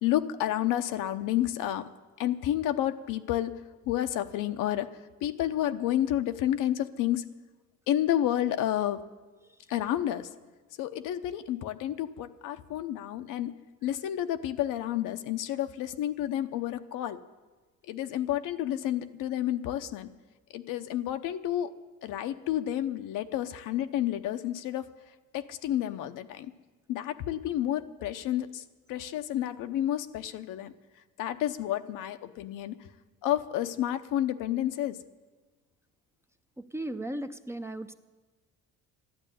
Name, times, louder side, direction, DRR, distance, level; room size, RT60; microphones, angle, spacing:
voice 1, 0.0-1.9 2.2-3.6 3.9-4.9 5.2-7.3 7.9-9.0 9.7-10.3 10.8-13.6 13.8-17.2 17.9-20.1 20.5-21.7 22.0-24.9 25.3-26.5 26.9-28.6 28.9-30.7 31.2-32.9 33.2-35.0, left 12 dB, 75° left, 9 dB, 0.9 m, -30 dB
voice 2, 36.6-37.9, right 1 dB, 10° right, 8 dB, 0.5 m, -36 dB
12.5 x 11.5 x 9.3 m, 1.3 s
cardioid pair, 135°, 32 cm